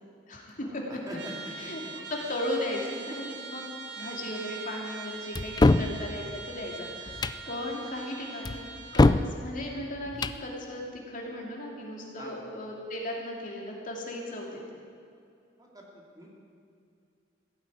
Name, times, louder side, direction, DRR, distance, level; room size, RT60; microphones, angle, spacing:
voice 1, 0.3-1.0 1.5-1.8 2.1-3.6 3.9-8.6 8.9-14.6, left 1 dB, 45° left, -1 dB, 2.8 m, -36 dB
voice 2, 1.1-1.7 7.4-7.7 12.2-12.5 15.6-16.4, equal, 20° right, -2 dB, 2.5 m, -43 dB
Trumpet, 1.1-9.2, right 5 dB, 65° right, 1.0 m, -42 dB
sound 1, 5.3-5.9 7.1-7.4 8.4-9.3 10.1-10.4, left 2 dB, 20° left, 0.4 m, -22 dB
16.0 x 9.0 x 9.3 m, 2.5 s
head